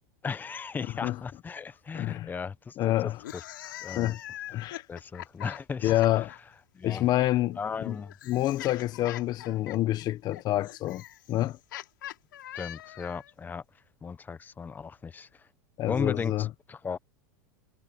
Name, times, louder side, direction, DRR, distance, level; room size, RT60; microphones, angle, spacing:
voice 1, 0.2-4.1 4.9-6.2 6.7-7.0 7.6-8.1 12.5-13.6 14.0-15.3 15.9-17.0, left 5 dB, 15° left, 1.1 m, -36 dB
voice 2, 1.9-2.3 2.8-3.2 3.9-4.2 4.5-4.8 5.8-6.3 6.8-8.0 8.3-11.0 11.3-11.6 15.8-16.5, left 14 dB, 40° left, 1.3 m, -27 dB
sound 1, 3.1-6.4 7.4-13.3, left 13 dB, 85° left, 3.4 m, -43 dB
supercardioid pair, 125°, 11 cm